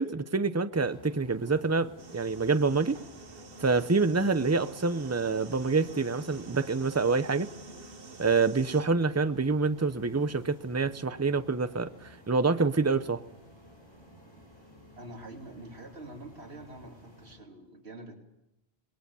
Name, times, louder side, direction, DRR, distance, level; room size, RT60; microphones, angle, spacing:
voice 1, 0.0-3.0 3.6-7.5 8.2-13.2, right 4 dB, 15° right, 11 dB, 0.7 m, -27 dB
sound 1, 0.7-17.4, left 1 dB, 25° left, 7.5 m, -54 dB
sound 2, 2.0-8.8, right 4 dB, 65° right, 1.4 m, -48 dB
voice 2, 14.9-18.2, right 2 dB, 85° right, 2 dB, 3.3 m, -46 dB
27.0 x 20.5 x 7.1 m, 0.89 s
omnidirectional pair, 1.1 m